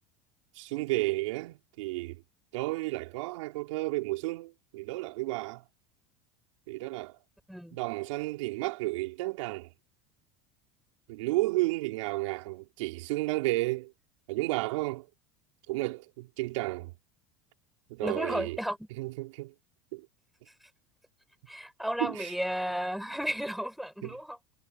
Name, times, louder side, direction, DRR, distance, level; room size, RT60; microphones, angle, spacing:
voice 1, 0.5-2.2 2.5-5.6 6.7-7.2 7.7-9.7 11.1-13.9 14.3-15.1 15.7-16.9 17.9-18.6 19.0-19.5 19.9-20.1 22.0-22.3 24.0-24.2, right 21 dB, 75° right, 5.2 m, -32 dB
voice 2, 18.0-18.9 21.5-24.4, equal, ahead, 6.1 m, -33 dB
hypercardioid pair, 100°, 16 cm